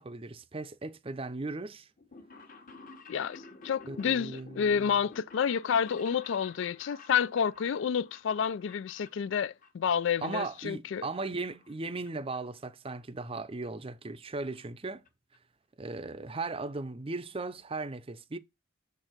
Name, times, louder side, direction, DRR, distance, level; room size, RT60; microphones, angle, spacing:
voice 1, 0.0-1.9 3.9-4.7 10.2-15.0 15.8-18.4, right 3 dB, 30° right, 0.6 m, -37 dB
sound 1, 2.0-9.7 10.0-10.7 11.0-12.1 12.3-12.4 13.4-13.5 13.6-13.7 14.0-14.1 14.4-14.7 15.1-15.2 15.3-15.4, left 4 dB, 45° left, 1.3 m, -51 dB
voice 2, 3.1-11.1, left 7 dB, 70° left, 0.3 m, -29 dB
6.8 x 4.5 x 5.1 m
head